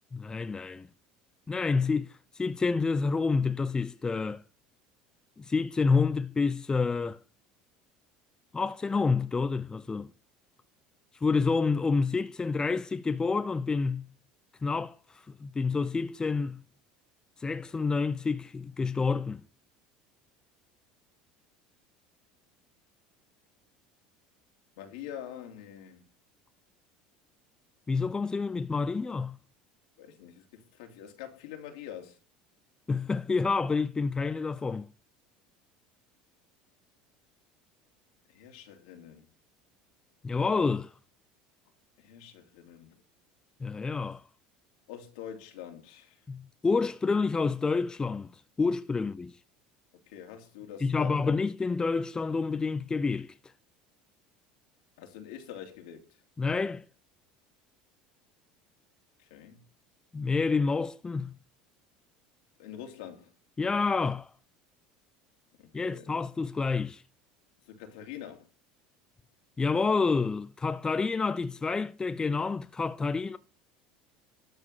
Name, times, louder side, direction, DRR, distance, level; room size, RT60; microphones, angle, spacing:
voice 1, 0.1-0.9 1.5-4.4 5.4-7.2 8.5-10.1 11.2-14.1 14.6-16.6 17.4-19.4 27.9-29.4 32.9-34.9 40.2-40.9 43.6-44.2 46.3-48.3 48.6-49.4 50.8-53.3 56.4-56.8 60.1-61.4 63.6-64.3 65.7-67.0 69.6-73.4, left 4 dB, 20° left, 0.7 m, -28 dB
voice 2, 24.8-26.1 30.0-32.2 38.3-39.3 42.0-43.0 44.9-46.2 50.1-51.3 55.0-56.1 59.2-59.6 62.6-63.3 65.6-66.2 67.7-68.5, left 9 dB, 75° left, 2.9 m, -45 dB
13.0 x 4.6 x 6.6 m
hypercardioid pair, 80°, 4 cm